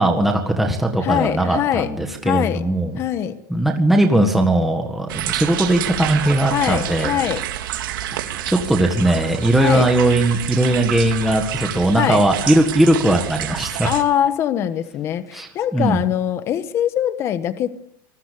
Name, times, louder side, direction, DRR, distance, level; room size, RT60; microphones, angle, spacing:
voice 1, 0.0-3.0 3.5-7.2 8.5-13.9 15.3-16.0, right 1 dB, ahead, 3 dB, 1.7 m, -19 dB
voice 2, 1.0-1.9 2.2-2.6 3.0-3.4 6.5-7.5 9.6-9.9 12.0-12.2 13.9-17.7, left 10 dB, 25° left, 12 dB, 1.3 m, -22 dB
sound 1, 5.1-14.0, right 11 dB, 80° right, 3.5 m, -28 dB
26.5 x 20.5 x 8.4 m, 0.78 s
supercardioid pair, 175°, 11 cm